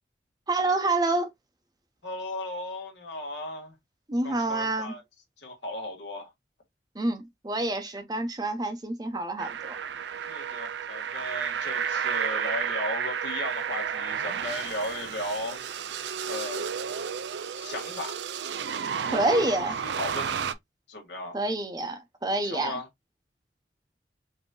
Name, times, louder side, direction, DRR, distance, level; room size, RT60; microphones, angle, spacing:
voice 1, 0.5-1.3 4.1-5.0 6.9-9.8 19.1-19.7 21.3-22.7, right 2 dB, 20° right, 0.7 m, -27 dB
voice 2, 2.0-3.7 4.2-5.0 5.4-6.3 10.3-15.7 16.3-16.7 17.6-18.2 19.0-19.7 19.9-20.5 20.9-21.4 22.4-22.9, left 1 dB, 80° left, 1.8 m, -36 dB
sound 1, 9.4-20.5, right 7 dB, 75° right, 0.4 m, -32 dB
5.3 x 2.8 x 2.2 m
head